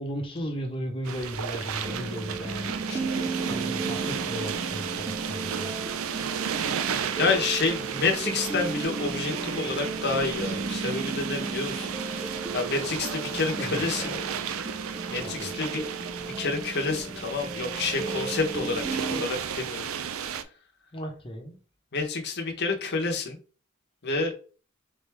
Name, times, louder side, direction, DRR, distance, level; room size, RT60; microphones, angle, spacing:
voice 1, 0.0-6.6 13.5-14.4 15.2-15.5 20.9-21.6, equal, 25° left, 2 dB, 1.0 m, -37 dB
sound 1, 1.0-20.4, right 7 dB, 80° right, 0.4 m, -34 dB
sound 2, 1.8-19.2, right 3 dB, 15° right, 0.4 m, -35 dB
voice 2, 7.2-14.2 15.1-19.9 21.9-23.4 24.0-24.3, left 4 dB, 55° left, 2 dB, 1.0 m, -29 dB
3.7 x 3.4 x 3.4 m, 0.38 s
head